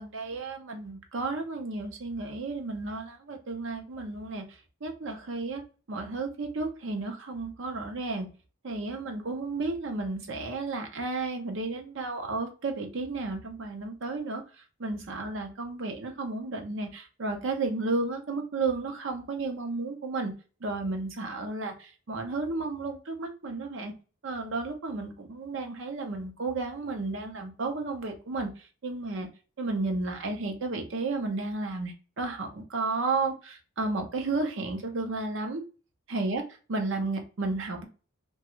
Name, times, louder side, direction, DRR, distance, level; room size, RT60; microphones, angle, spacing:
voice 1, 0.0-4.4 4.8-5.6 5.9-8.3 8.6-14.4 14.8-20.3 20.6-23.9 24.2-28.5 28.8-29.3 29.6-35.6 36.1-36.4 36.7-37.9, right 3 dB, 60° right, 4 dB, 0.6 m, -32 dB
2.4 x 2.2 x 2.9 m, 0.35 s
head